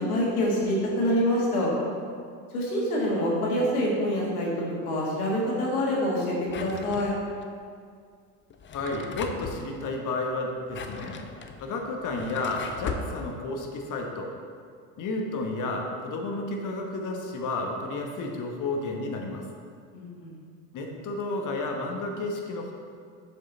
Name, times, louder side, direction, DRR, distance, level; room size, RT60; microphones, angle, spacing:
voice 1, 0.0-1.7 2.5-4.5 4.8-7.1 19.9-20.3, equal, 90° left, -4 dB, 1.9 m, -26 dB
Drawer open or close, 6.5-7.4 8.5-9.6 10.5-13.1, left 5 dB, 30° left, 0.6 m, -38 dB
voice 2, 8.7-11.2 11.6-14.3 15.0-19.4 20.7-22.7, left 2 dB, 45° left, 2 dB, 1.3 m, -31 dB
6.9 x 5.8 x 4.0 m, 2.2 s
hypercardioid pair, 80°, 42 cm